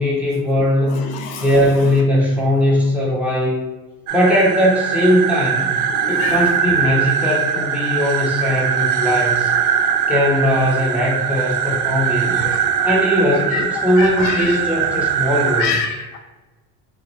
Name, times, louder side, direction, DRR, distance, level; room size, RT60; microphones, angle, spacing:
voice 1, 0.0-1.0 1.4-3.6 4.1-5.8 6.1-9.5 10.1-12.4 12.8-15.8, left 1 dB, 5° right, -5 dB, 1.3 m, -19 dB
voice 2, 0.9-1.5 5.9-6.4 12.4-12.6 13.5-14.6 15.6-16.2, left 5 dB, 70° left, 4 dB, 0.6 m, -26 dB
sound 1, 4.1-15.6, right 7 dB, 50° right, 0.5 m, -21 dB
2.8 x 2.2 x 4.0 m, 1.1 s
hypercardioid pair, 75°, 42 cm